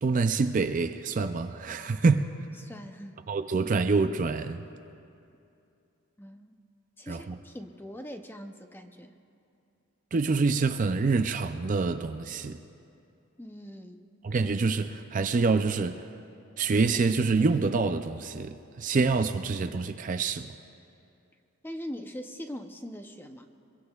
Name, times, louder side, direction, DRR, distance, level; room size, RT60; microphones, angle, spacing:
voice 1, 0.0-2.2 3.3-4.6 7.1-7.4 10.1-12.6 14.2-16.0 16.6-20.5, right 4 dB, 35° right, 0.4 m, -26 dB
voice 2, 2.6-3.2 6.2-6.6 7.0-9.2 13.4-14.0 21.6-23.5, equal, 10° left, 0.6 m, -42 dB
24.5 x 22.5 x 2.4 m
head